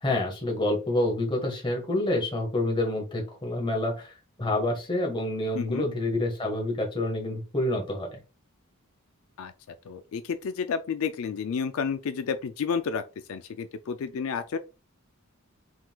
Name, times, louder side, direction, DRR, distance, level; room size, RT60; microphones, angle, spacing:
voice 1, 0.0-8.2, left 1 dB, 20° left, 1.3 m, -28 dB
voice 2, 5.5-5.9 9.4-9.5 9.9-13.0 13.3-14.6, left 6 dB, 70° left, 0.4 m, -31 dB
4.5 x 3.8 x 2.3 m
head